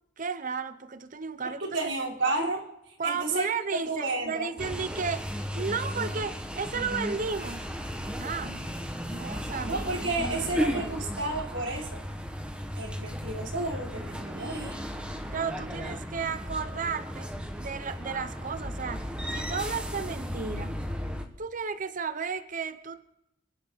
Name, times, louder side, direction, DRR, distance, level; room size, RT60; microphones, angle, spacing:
voice 1, 0.2-1.8 3.0-5.3 5.5-7.6 8.2-8.7 9.1-9.8 10.2-10.5 15.3-20.9 21.4-23.1, right 5 dB, 45° right, 0.8 m, -34 dB
voice 2, 1.6-2.6 3.0-3.5 3.9-4.5 9.7-12.0 12.8-14.8, right 2 dB, 90° right, 3.6 m, -31 dB
sound 1, 4.6-21.2, equal, 5° right, 1.6 m, -35 dB
28.0 x 11.5 x 4.1 m
head